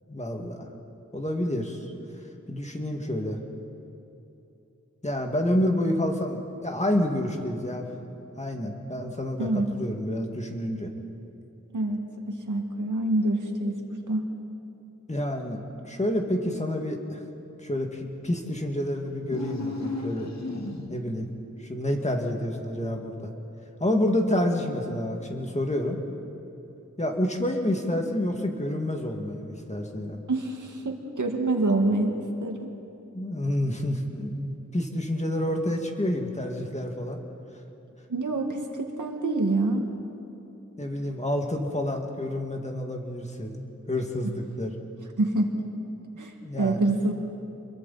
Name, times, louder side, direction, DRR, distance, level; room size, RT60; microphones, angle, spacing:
voice 1, 0.1-0.7 1.1-1.8 2.5-3.4 5.0-7.9 8.4-10.9 15.1-17.2 17.6-20.3 20.9-21.3 21.7-23.3 23.8-26.0 27.0-30.2 33.1-37.2 40.8-44.7 46.4-46.8, left 1 dB, 20° left, 2 dB, 2.2 m, -28 dB
voice 2, 12.3-14.3 30.3-32.7 38.1-39.9 44.2-44.3 45.2-45.6 46.2-47.1, right 2 dB, 80° right, 2 dB, 2.1 m, -26 dB
sound 1, 19.2-21.2, left 2 dB, 60° left, 2.1 m, -34 dB
27.5 x 22.0 x 4.3 m, 2.9 s
wide cardioid pair, 80°, 30 cm